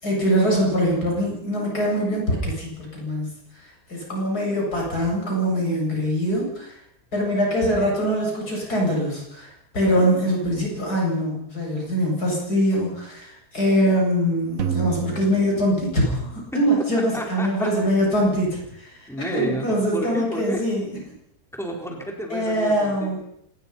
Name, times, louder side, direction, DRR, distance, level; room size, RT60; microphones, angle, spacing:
voice 1, 0.0-3.3 3.9-6.7 7.1-9.5 9.7-16.2 16.5-18.9 19.3-20.9 22.3-23.2, equal, 80° left, -1 dB, 8.5 m, -23 dB
sound 1, 14.6-16.8, right 8 dB, 60° right, 1.7 m, -30 dB
voice 2, 17.1-17.9 19.1-20.6 21.5-23.2, equal, ahead, 1 dB, 4.3 m, -31 dB
26.5 x 20.5 x 5.8 m, 0.73 s
omnidirectional pair, 1.6 m